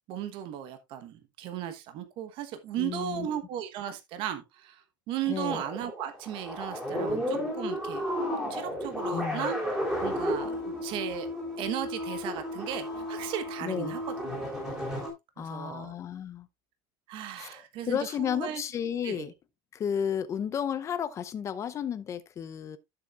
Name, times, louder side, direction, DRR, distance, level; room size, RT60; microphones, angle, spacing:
voice 1, 0.1-8.1 8.5-9.6 10.0-11.3 11.6-14.3 15.4-15.9 17.1-18.6 19.0-19.3, right 11 dB, 50° right, 1.2 m, -36 dB
voice 2, 2.8-3.4 5.3-5.6 9.1-9.5 13.6-14.0 15.4-16.5 17.4-17.5 17.9-19.3 19.7-22.8, left 8 dB, 25° left, 0.7 m, -32 dB
sound 1, 5.4-15.1, equal, 5° right, 3.8 m, -33 dB
11.5 x 7.0 x 2.4 m
cardioid pair, 150°, 11 cm